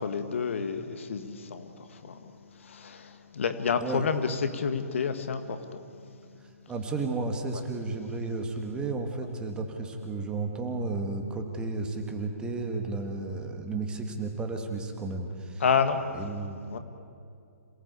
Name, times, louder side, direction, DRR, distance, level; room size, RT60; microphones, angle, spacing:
voice 1, 0.0-5.8 7.5-7.6 15.6-16.0 16.7-16.8, left 6 dB, 55° left, 9 dB, 1.7 m, -30 dB
voice 2, 6.7-15.6 16.1-16.8, right 3 dB, 10° right, 4 dB, 2.1 m, -33 dB
27.5 x 18.0 x 8.4 m, 2.5 s
figure-of-eight pair, 130°, 8 cm